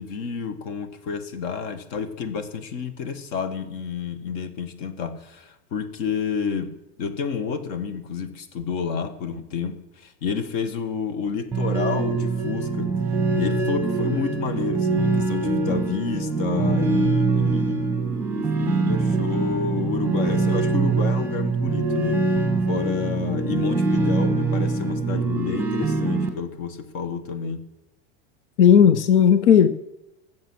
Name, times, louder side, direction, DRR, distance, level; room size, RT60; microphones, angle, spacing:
voice 1, 0.0-6.7 7.0-12.9 13.4-18.0 18.3-22.4 22.7-27.6, left 6 dB, 45° left, 10 dB, 1.5 m, -30 dB
sound 1, 11.5-26.3, right 3 dB, 5° right, 1.6 m, -23 dB
voice 2, 28.6-29.7, left 8 dB, 85° left, 10 dB, 1.0 m, -14 dB
15.5 x 7.4 x 6.2 m, 0.93 s
supercardioid pair, 165°, 33 cm